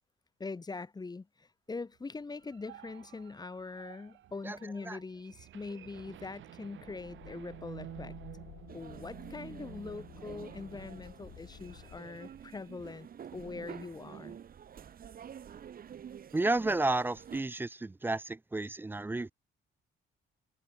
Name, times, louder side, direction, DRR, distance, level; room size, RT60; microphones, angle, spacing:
voice 1, 0.4-14.4, left 3 dB, 20° left, 0.8 m, -43 dB
sound 1, 2.1-13.1 13.5-13.7 14.0-14.7, right 12 dB, 75° right, 2.0 m, -52 dB
sound 2, 6.8-12.0, left 13 dB, 80° left, 3.4 m, -53 dB
sound 3, 8.7-17.4, right 8 dB, 45° right, 0.9 m, -49 dB
voice 2, 16.3-19.3, right 2 dB, 10° right, 0.3 m, -32 dB
cardioid pair, 90°, 20 cm